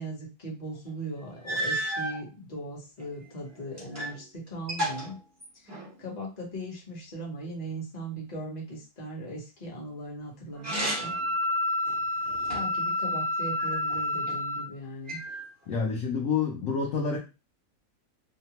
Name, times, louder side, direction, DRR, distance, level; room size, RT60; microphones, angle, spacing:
voice 1, 0.0-5.2 5.5-11.2 12.5-15.2, right 1 dB, 30° left, 0.9 m, -39 dB
sound 1, 0.9-1.0 1.4-2.2 3.0-4.2 4.5-6.0 10.5-11.3 11.8-12.8 13.6-14.4 15.1-15.8, right 1 dB, 15° right, 0.7 m, -34 dB
Wind instrument woodwind instrument, 10.7-14.7, left 1 dB, 80° right, 0.6 m, -29 dB
voice 2, 15.7-17.2, left 5 dB, 65° left, 0.8 m, -28 dB
2.8 x 2.2 x 2.8 m
omnidirectional pair, 1.8 m